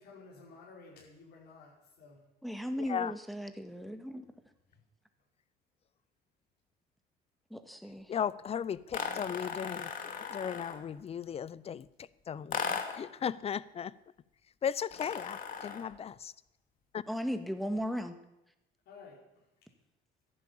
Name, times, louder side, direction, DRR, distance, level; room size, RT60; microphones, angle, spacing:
voice 1, 0.0-2.2 4.7-4.8 18.9-19.4, left 4 dB, 75° left, -6 dB, 5.4 m, -53 dB
voice 2, 2.4-4.2 7.5-8.1 17.1-18.1, equal, ahead, 8 dB, 1.8 m, -36 dB
voice 3, 8.1-11.9 12.3-13.9 14.6-16.3 16.9-17.0, left 8 dB, 35° left, 19 dB, 0.7 m, -36 dB
sound 1, 8.9-10.9 12.5-13.1 14.9-15.9, left 6 dB, 55° left, 2.7 m, -37 dB
15.0 x 11.0 x 8.7 m, 0.90 s
cardioid pair, 110°, 17 cm